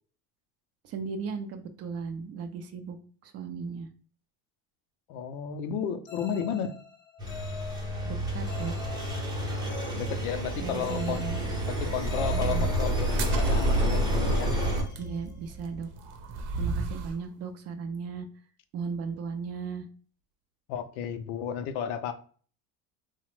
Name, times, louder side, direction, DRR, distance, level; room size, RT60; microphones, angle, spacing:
voice 1, 0.8-3.0 3.2-3.9 8.1-8.8 10.6-11.5 12.3-12.7 15.0-15.9 16.6-18.3 18.7-19.9, right 5 dB, 40° right, 0.4 m, -36 dB
voice 2, 5.1-6.8 10.0-11.3 11.6-14.5 20.7-22.1, left 7 dB, 80° left, 0.6 m, -33 dB
sound 1, 6.1-15.9, left 6 dB, 30° left, 0.5 m, -45 dB
Engine, 7.2-14.8, right 1 dB, 10° right, 0.7 m, -28 dB
sound 2, 13.0-17.2, right 3 dB, 70° right, 0.7 m, -36 dB
2.9 x 2.1 x 3.0 m
supercardioid pair, 120°, 41 cm